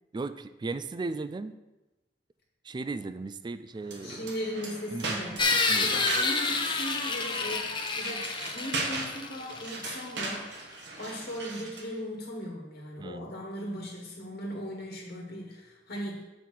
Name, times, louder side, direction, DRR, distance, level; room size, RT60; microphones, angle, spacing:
voice 1, 0.1-1.5 2.6-4.3 4.9-6.0 13.0-13.3, right 3 dB, 25° right, 13 dB, 0.3 m, -37 dB
sound 1, 3.8-11.9, right 3 dB, 85° right, 1.3 m, -38 dB
voice 2, 4.0-7.7 8.0-10.5 11.0-16.2, equal, 60° left, -1 dB, 1.4 m, -38 dB
sound 2, 5.4-10.1, left 3 dB, 30° left, 0.7 m, -29 dB
7.0 x 4.7 x 5.8 m, 1.0 s
head